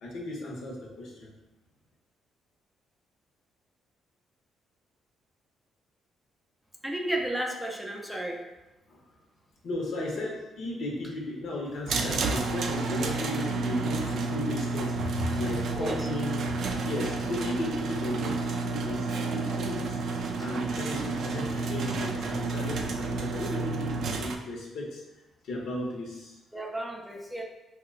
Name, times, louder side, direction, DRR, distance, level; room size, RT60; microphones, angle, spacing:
voice 1, 0.0-1.3 9.6-16.4 16.8-20.0 20.4-25.0 25.4-26.3, left 1 dB, 70° left, -1 dB, 0.8 m, -35 dB
voice 2, 6.8-8.4 15.7-16.1 26.5-27.4, right 1 dB, 5° right, 0 dB, 0.5 m, -33 dB
sound 1, 11.9-24.4, right 3 dB, 65° right, 0.3 m, -30 dB
2.9 x 2.1 x 3.7 m, 0.99 s
cardioid pair, 90°, 0 cm